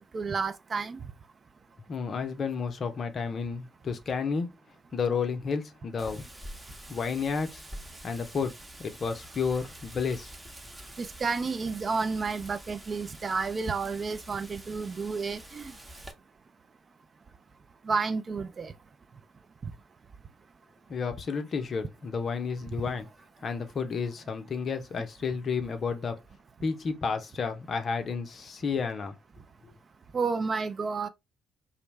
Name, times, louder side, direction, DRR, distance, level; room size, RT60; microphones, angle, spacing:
voice 1, 0.1-1.0 11.0-15.7 17.9-18.7 19.6-19.7 30.1-31.1, right 4 dB, 40° right, 0.3 m, -31 dB
voice 2, 1.9-4.5 4.9-6.2 6.9-7.6 8.0-8.5 8.8-10.3 20.9-23.1 23.4-26.1 26.6-29.2 29.6-29.7, left 5 dB, 50° left, 0.5 m, -31 dB
Wind, 6.0-16.1, right 1 dB, 20° right, 0.8 m, -47 dB
2.5 x 2.1 x 3.1 m
hypercardioid pair, 45°, 0 cm